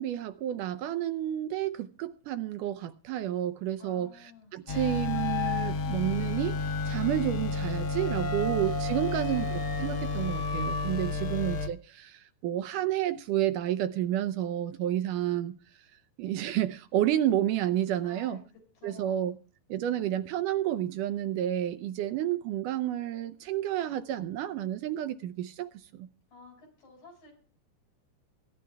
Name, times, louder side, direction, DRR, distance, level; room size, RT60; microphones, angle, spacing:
voice 1, 0.0-4.1 4.5-6.6 6.9-15.6 16.2-18.4 18.8-19.4 19.7-26.1, right 12 dB, 75° right, 2.2 m, -30 dB
voice 2, 3.8-4.5 11.1-11.4 18.0-18.4 18.7-19.4 19.8-20.0 26.3-27.3, left 2 dB, 85° left, 8.0 m, -52 dB
sound 1, 4.7-11.7, left 3 dB, 55° left, 1.5 m, -31 dB
23.5 x 10.5 x 3.4 m
omnidirectional pair, 3.9 m